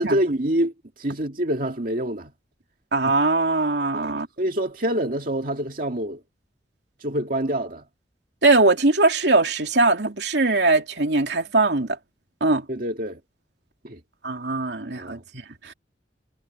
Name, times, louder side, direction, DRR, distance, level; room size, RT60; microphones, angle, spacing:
voice 1, 0.0-2.3 3.9-6.2 7.0-7.8 12.7-13.2 13.8-14.0 14.9-15.2, right 1 dB, 50° right, 2.2 m, -26 dB
voice 2, 2.9-4.3 8.4-12.0 12.4-12.6 14.2-15.7, right 3 dB, 70° right, 2.9 m, -21 dB
head